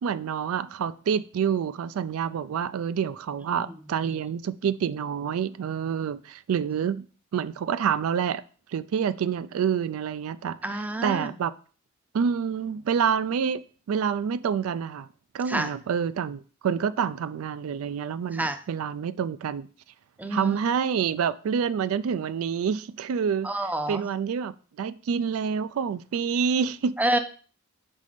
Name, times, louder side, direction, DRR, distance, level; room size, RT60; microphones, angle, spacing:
voice 1, 0.0-7.0 7.3-8.4 8.7-11.5 12.1-15.1 15.3-19.7 20.3-23.5 23.9-27.0, right 7 dB, 80° right, 0.3 m, -27 dB
voice 2, 3.4-3.7 10.6-11.3 15.5-15.7 18.3-18.6 20.2-20.6 23.4-24.0 27.0-27.2, right 1 dB, 10° right, 0.5 m, -28 dB
5.4 x 4.2 x 5.0 m
head